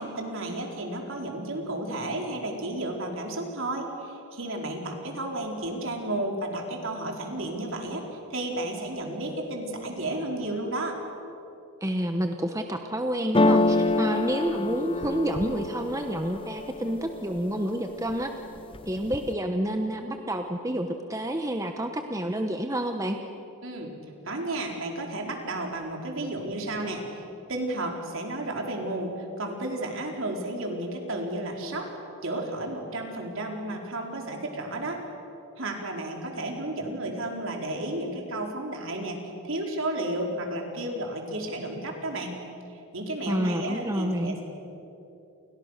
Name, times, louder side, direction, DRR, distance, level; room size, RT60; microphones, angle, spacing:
voice 1, 0.0-11.0 23.6-23.9 24.2-27.2 27.5-31.9 32.2-35.0 35.6-42.4 42.7-44.4, right 1 dB, 60° right, 1 dB, 4.6 m, -32 dB
voice 2, 11.8-18.3 18.9-23.2 43.3-44.4, right 1 dB, 15° right, 5 dB, 1.1 m, -29 dB
sound 1, 13.3-17.2 17.7-18.3 18.6-19.3, left 2 dB, 25° left, 0.7 m, -26 dB
29.5 x 29.5 x 6.7 m, 2.9 s
head